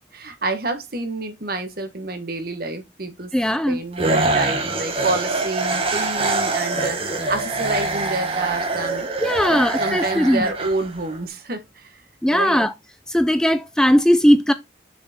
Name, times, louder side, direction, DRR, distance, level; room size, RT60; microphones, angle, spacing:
voice 1, 0.1-3.3 3.7-7.0 7.3-12.0 12.3-12.6, right 2 dB, 55° right, 1.4 m, -28 dB
voice 2, 3.3-3.8 9.2-10.5 12.2-12.7 13.1-14.5, equal, 5° left, 0.4 m, -18 dB
sound 1, 4.0-11.2, right 3 dB, 30° right, 1.3 m, -24 dB
6.6 x 4.7 x 4.2 m
head